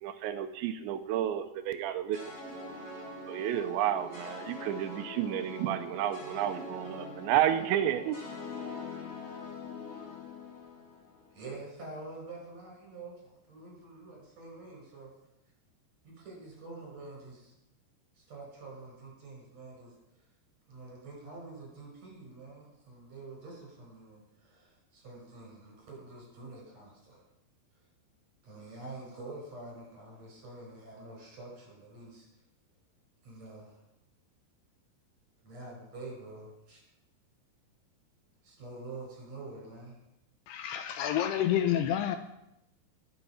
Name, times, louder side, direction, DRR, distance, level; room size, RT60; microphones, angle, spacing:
voice 1, 0.0-2.5 3.3-8.2, right 11 dB, 85° right, 9 dB, 3.1 m, -31 dB
sound 1, 2.1-11.4, left 3 dB, 40° left, 5.8 m, -43 dB
voice 2, 11.3-15.1 16.0-17.5 18.2-19.9 20.7-27.3 28.4-32.3 33.2-33.8 35.4-36.8 38.4-40.0, right 2 dB, 40° right, 0 dB, 6.1 m, -47 dB
voice 3, 40.5-42.2, left 10 dB, 80° left, 8 dB, 2.5 m, -29 dB
20.5 x 8.2 x 5.7 m, 0.87 s
omnidirectional pair, 5.1 m